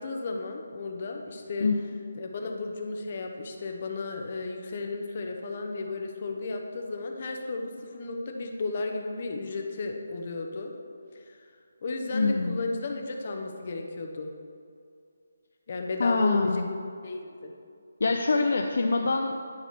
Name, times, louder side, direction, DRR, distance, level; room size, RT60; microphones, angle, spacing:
voice 1, 0.0-1.7 2.2-10.7 11.1-11.4 11.8-14.3 15.7-16.6 17.0-17.5, left 3 dB, 45° left, 3 dB, 1.0 m, -34 dB
voice 2, 12.1-12.6 16.0-16.7 18.0-19.4, left 3 dB, 65° left, 3 dB, 0.5 m, -24 dB
10.0 x 4.1 x 5.9 m, 2.4 s
figure-of-eight pair, 155°, 0 cm